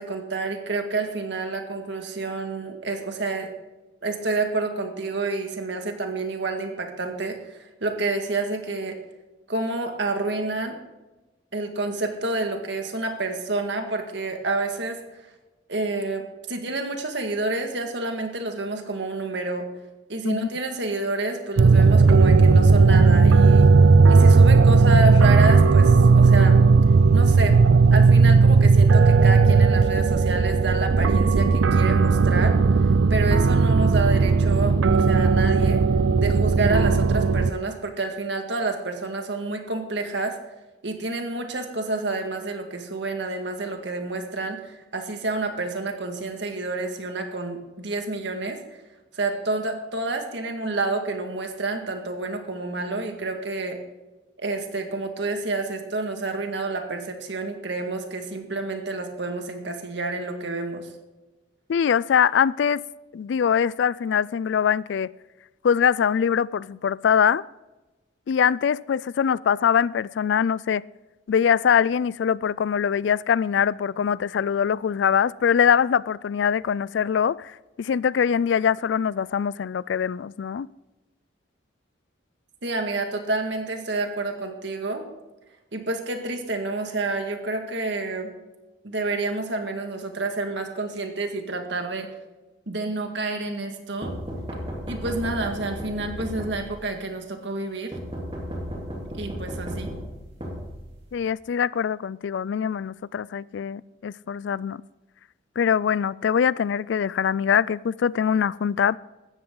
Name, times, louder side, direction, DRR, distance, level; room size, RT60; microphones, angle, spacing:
voice 1, 0.0-3.5 4.0-9.0 9.5-10.8 11.5-15.0 15.7-19.7 20.1-23.7 24.1-26.6 27.1-27.6 27.9-32.6 33.1-35.8 36.2-40.4 40.8-48.8 49.1-53.8 54.4-60.9 82.6-85.0 85.7-88.3 88.8-92.1 92.7-94.1 94.9-98.0 99.1-99.9, right 3 dB, 70° right, 1.9 m, -29 dB
sound 1, 21.6-37.5, right 4 dB, 90° right, 0.5 m, -16 dB
voice 2, 61.7-62.8 63.1-65.1 65.6-67.4 68.3-70.8 71.3-80.7 101.1-104.8 105.6-109.0, left 7 dB, 70° left, 0.3 m, -23 dB
sound 2, 94.0-97.0 97.9-101.2, equal, 30° right, 3.2 m, -34 dB
16.5 x 12.5 x 3.9 m
head